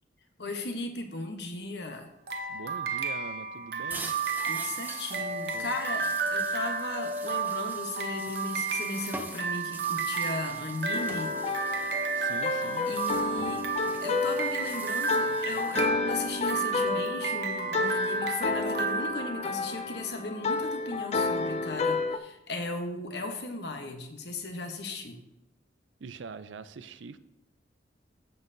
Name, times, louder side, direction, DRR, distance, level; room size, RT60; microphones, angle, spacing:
voice 1, 0.4-2.1 4.5-11.3 12.9-13.7 14.0-25.2, left 2 dB, 65° left, 5 dB, 1.0 m, -36 dB
sound 1, 2.3-19.9, right 4 dB, 60° right, 0.8 m, -32 dB
voice 2, 2.5-4.2 5.5-5.8 12.1-12.9 13.3-13.4 26.0-27.2, right 4 dB, 90° right, 13 dB, 0.5 m, -43 dB
sound 2, 3.9-15.8, right 3 dB, 10° right, 0.6 m, -44 dB
sound 3, 10.9-22.2, left 3 dB, 35° left, 0.4 m, -31 dB
15.0 x 5.5 x 2.7 m, 0.90 s
head